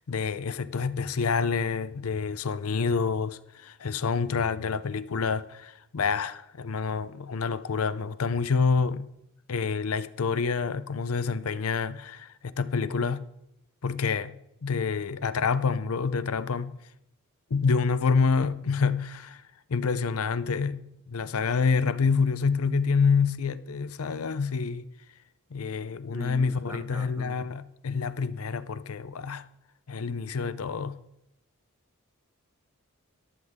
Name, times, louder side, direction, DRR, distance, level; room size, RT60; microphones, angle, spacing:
voice 1, 0.0-9.1 9.5-13.3 13.8-14.3 14.6-16.8 17.5-19.4 19.7-24.9 25.5-29.4 29.9-31.0, left 5 dB, 85° left, 0.6 m, -27 dB
voice 2, 26.1-27.5, equal, 10° right, 1.1 m, -41 dB
14.0 x 12.0 x 3.6 m
head